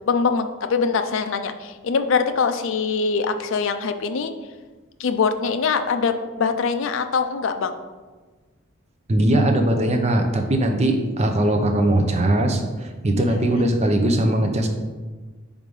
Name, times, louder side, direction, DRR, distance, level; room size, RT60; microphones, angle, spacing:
voice 1, 0.1-4.3 5.0-7.7 13.7-13.8, left 5 dB, 65° left, 8 dB, 0.4 m, -23 dB
voice 2, 9.1-14.7, right 1 dB, 30° right, 4 dB, 0.7 m, -20 dB
4.9 x 3.7 x 5.3 m, 1.3 s
head